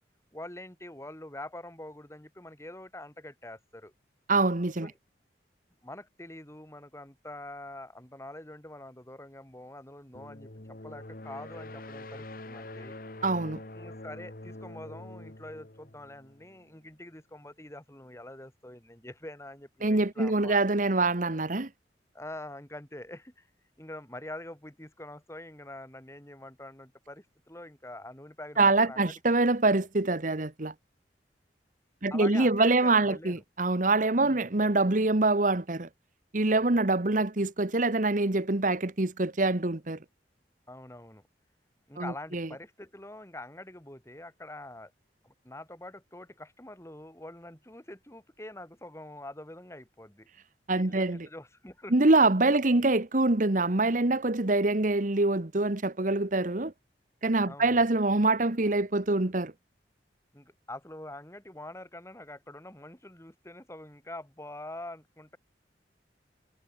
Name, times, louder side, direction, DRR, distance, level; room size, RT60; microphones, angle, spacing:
voice 1, 0.3-3.9 4.8-4.9 5.8-13.0 13.7-20.6 22.1-23.5 23.8-29.1 32.1-33.4 34.2-34.5 40.7-41.2 41.9-44.9 45.2-50.3 50.8-51.9 52.6-52.8 57.4-57.8 60.3-65.4, left 1 dB, 15° left, 4.1 m, -45 dB
voice 2, 4.3-4.9 13.2-13.6 19.8-21.7 28.6-30.7 32.0-35.9 36.3-40.0 42.0-42.5 50.7-51.3 51.9-56.7 57.2-59.5, right 2 dB, 50° right, 1.3 m, -25 dB
sound 1, 10.1-16.8, left 2 dB, 55° left, 1.9 m, -45 dB
head